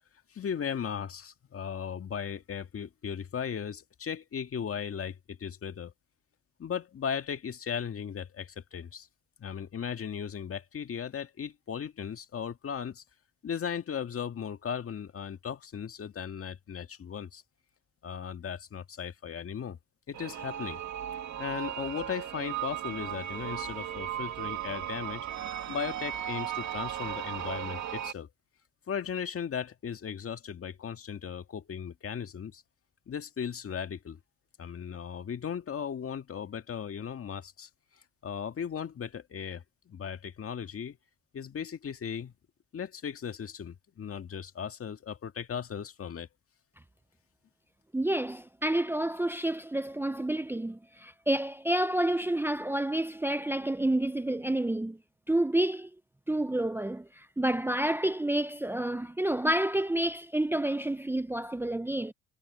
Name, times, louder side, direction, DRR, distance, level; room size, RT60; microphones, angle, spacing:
voice 1, 0.3-5.9 6.6-9.1 9.4-13.0 13.4-17.4 18.0-19.8 20.1-20.8 21.4-25.3 25.7-28.3 28.9-32.6 33.1-34.2 34.6-37.7 37.9-41.0 41.3-42.3 42.7-46.3, left 7 dB, 45° left, 1.9 m, -37 dB
sound 1, 20.1-28.1, right 11 dB, 65° right, 2.7 m, -36 dB
voice 2, 47.9-55.0 55.3-55.9 56.3-62.1, right 1 dB, 5° right, 0.7 m, -29 dB
supercardioid pair, 75°, 30 cm